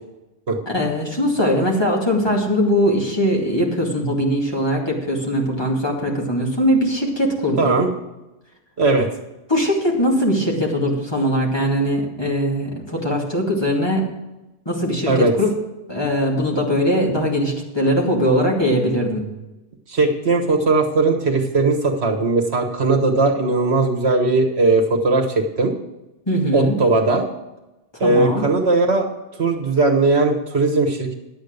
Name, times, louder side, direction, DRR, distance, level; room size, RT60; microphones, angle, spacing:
voice 1, 0.7-7.7 9.5-14.0 14.7-15.5 15.9-19.3 26.3-26.8 27.9-28.4, equal, 20° left, -2 dB, 2.3 m, -20 dB
voice 2, 7.6-7.9 8.8-9.1 15.1-15.3 19.9-25.7 26.5-27.3 28.0-29.1 29.4-31.2, right 3 dB, 65° right, 2 dB, 1.6 m, -18 dB
11.5 x 8.4 x 6.6 m, 1.0 s
omnidirectional pair, 1.2 m